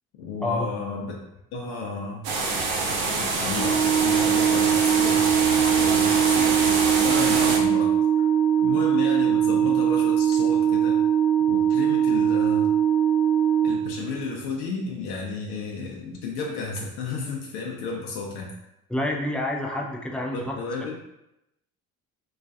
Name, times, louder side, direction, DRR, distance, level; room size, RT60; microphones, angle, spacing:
voice 1, 0.2-1.2 1.5-2.3 3.2-6.7 7.0-8.0 8.6-11.0 11.5-12.8 13.6-18.5 20.3-21.0, left 4 dB, 70° left, -1 dB, 0.6 m, -33 dB
sound 1, 2.2-7.6, right 3 dB, 65° right, 0.6 m, -25 dB
Organ, 3.5-14.4, right 9 dB, 30° right, 0.9 m, -21 dB
voice 2, 18.9-20.6, left 1 dB, ahead, -1 dB, 0.4 m, -28 dB
2.3 x 2.2 x 2.6 m, 0.88 s
hypercardioid pair, 50°, 40 cm